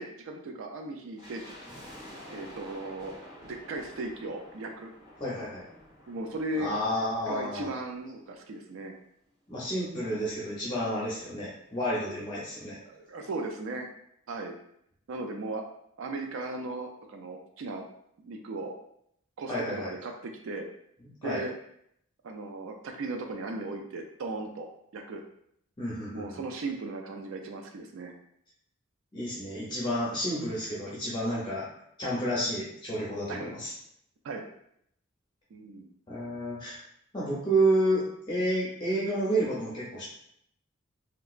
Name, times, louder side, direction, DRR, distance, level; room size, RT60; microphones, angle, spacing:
voice 1, 0.0-1.5 2.3-3.2 3.4-4.9 6.1-6.8 7.3-8.9 12.8-13.9 14.3-14.6 15.1-15.6 16.0-17.8 18.2-18.7 19.4-20.7 21.2-21.5 22.2-25.2 26.1-28.1 33.3-33.5 34.2-34.5 35.5-35.9, right 2 dB, 65° right, 3 dB, 0.4 m, -37 dB
sound 1, 1.2-8.4 8.7-8.8 9.5-11.3 11.5-11.6 11.9-12.2 12.6-12.7, equal, 25° right, 1.2 m, -50 dB
voice 2, 5.2-5.6 6.6-7.7 9.5-12.8 19.5-19.9 21.2-21.4 25.8-26.5 29.1-31.7 32.0-33.7 36.1-36.8 37.1-40.0, right 1 dB, 20° left, -7 dB, 0.6 m, -30 dB
3.3 x 2.8 x 2.4 m, 0.72 s
head